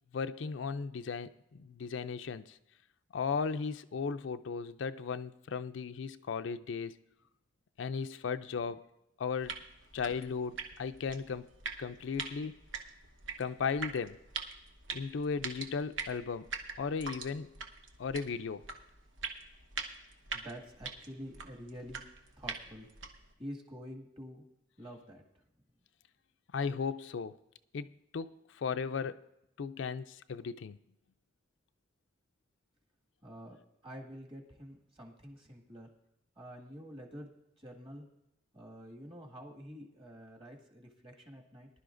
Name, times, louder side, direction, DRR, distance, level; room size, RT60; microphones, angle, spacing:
voice 1, 0.1-2.6 3.1-7.0 7.8-8.8 9.2-9.6 9.9-11.5 11.8-12.5 13.4-14.2 14.9-16.5 16.8-17.5 18.0-18.6 26.5-27.4 27.7-27.9 28.1-29.2 29.6-30.8, left 5 dB, 75° left, 0.4 m, -36 dB
sound 1, 9.4-23.3, right 5 dB, 85° right, 1.1 m, -44 dB
voice 2, 20.3-22.0 22.4-22.9 23.4-24.4 24.8-25.2 33.2-33.6 33.8-35.9 36.4-38.1 38.5-41.7, equal, 30° right, 1.9 m, -48 dB
19.5 x 11.5 x 2.5 m
head